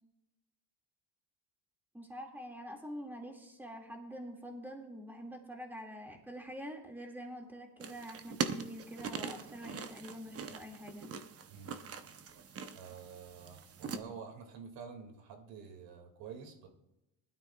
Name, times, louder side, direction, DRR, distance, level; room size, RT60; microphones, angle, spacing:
voice 1, 1.9-11.1, equal, 5° right, 1 dB, 2.1 m, -46 dB
sound 1, 7.8-14.0, right 6 dB, 35° right, 0.8 m, -42 dB
voice 2, 12.7-16.7, right 6 dB, 85° right, 4 dB, 2.3 m, -48 dB
20.5 x 12.5 x 2.3 m, 0.92 s
cardioid pair, 135°, 43 cm